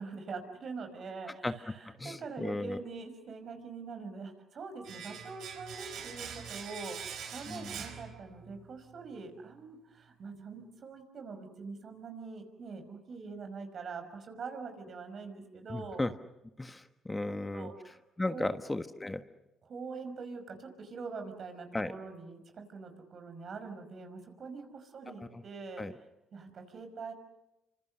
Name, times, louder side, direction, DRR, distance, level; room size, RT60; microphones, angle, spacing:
voice 1, 0.0-16.0 17.5-18.0 18.3-18.6 19.6-25.8 26.3-27.1, right 4 dB, 55° right, 7 dB, 5.6 m, -44 dB
voice 2, 1.8-2.8 7.5-7.8 15.7-16.1 16.6-17.7 18.2-19.2 21.7-21.9 25.2-25.4 25.8-25.9, left 2 dB, 15° left, 9 dB, 1.4 m, -35 dB
Domestic sounds home sounds, 4.8-8.7 8.9-9.1, right 7 dB, 70° right, 4.7 m, -44 dB
28.5 x 25.5 x 6.6 m, 0.94 s
supercardioid pair, 65°, 0 cm